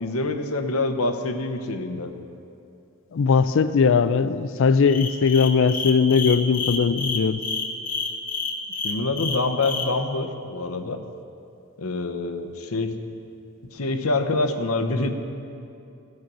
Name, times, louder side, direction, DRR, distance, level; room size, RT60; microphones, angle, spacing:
voice 1, 0.0-2.1 8.8-11.0 11.8-13.0 13.7-15.1, left 2 dB, 80° left, 7 dB, 0.8 m, -26 dB
voice 2, 3.1-7.4, left 5 dB, 60° left, 14 dB, 0.4 m, -19 dB
sound 1, 4.9-9.9, left 5 dB, 40° left, 0.9 m, -29 dB
16.0 x 6.5 x 6.0 m, 2.6 s
head